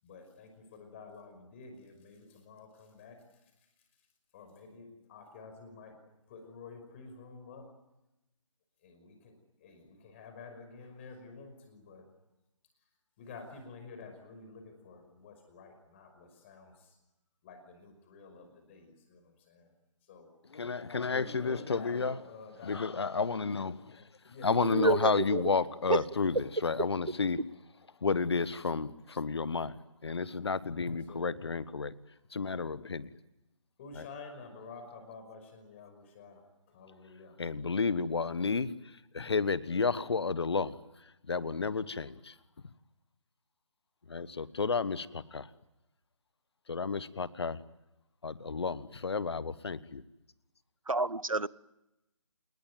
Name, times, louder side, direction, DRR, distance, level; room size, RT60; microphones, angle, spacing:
voice 1, 0.0-3.7 4.3-6.0 6.3-7.7 8.8-12.1 13.2-17.0 17.4-19.7 20.0-20.3 21.0-23.2 24.3-25.2 30.8-31.4 33.8-37.4, left 4 dB, 25° left, 6 dB, 5.5 m, -50 dB
voice 2, 20.5-22.2 22.6-24.0 24.4-27.4 28.0-29.7 30.0-31.9 32.3-33.1 34.0-34.1 37.4-38.7 39.1-40.8 41.3-42.3 44.1-45.5 46.7-47.6 48.2-50.0, left 4 dB, 50° left, 17 dB, 1.3 m, -31 dB
voice 3, 24.7-25.4 25.9-26.0 50.9-51.5, right 2 dB, 85° right, 20 dB, 1.0 m, -28 dB
27.5 x 20.5 x 9.4 m, 0.94 s
figure-of-eight pair, 150°, 17 cm